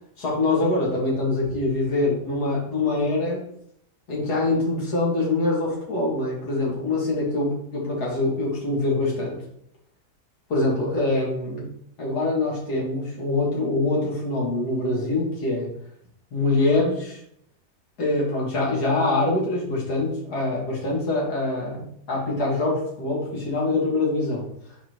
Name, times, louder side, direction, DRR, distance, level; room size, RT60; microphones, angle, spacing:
voice 1, 0.2-3.4 4.1-9.4 10.5-11.7 12.0-15.7 16.3-17.2 18.0-24.4, left 2 dB, 85° left, -4 dB, 2.5 m, -24 dB
5.0 x 4.3 x 4.5 m, 0.70 s
omnidirectional pair, 1.7 m